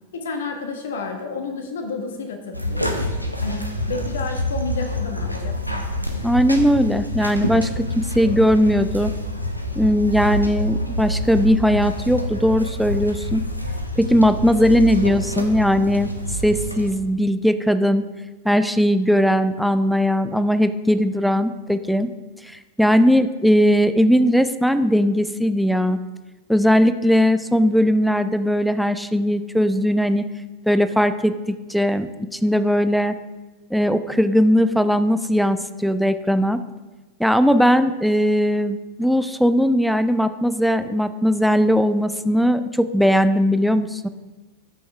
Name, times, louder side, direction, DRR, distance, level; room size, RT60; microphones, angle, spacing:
voice 1, 0.1-3.1 3.4-5.8, left 4 dB, 65° left, 4 dB, 1.3 m, -31 dB
sound 1, 2.5-16.9, left 1 dB, 90° left, 0.8 m, -27 dB
voice 2, 6.2-9.1 9.8-13.4 14.0-16.1 16.4-18.1 18.4-22.1 22.4-26.0 26.5-30.2 30.7-33.2 33.7-36.6 37.2-44.1, equal, ahead, 11 dB, 0.4 m, -19 dB
13.0 x 6.2 x 3.4 m, 1.2 s
figure-of-eight pair, 90°, 0 cm